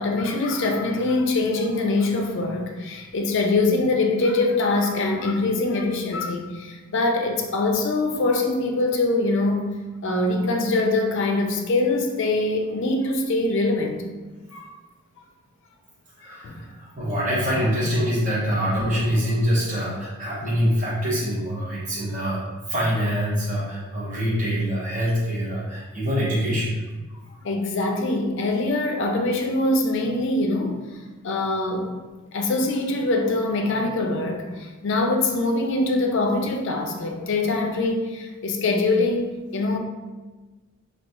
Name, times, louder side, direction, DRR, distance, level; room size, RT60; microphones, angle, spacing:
voice 1, 0.0-9.7 10.0-14.0 14.5-14.7 16.3-16.6 27.4-30.9 31.2-31.9 32.3-39.8, left 2 dB, 55° left, 3 dB, 0.4 m, -23 dB
voice 2, 16.2-26.8, equal, 35° right, -8 dB, 1.0 m, -25 dB
2.4 x 2.3 x 4.0 m, 1.2 s
head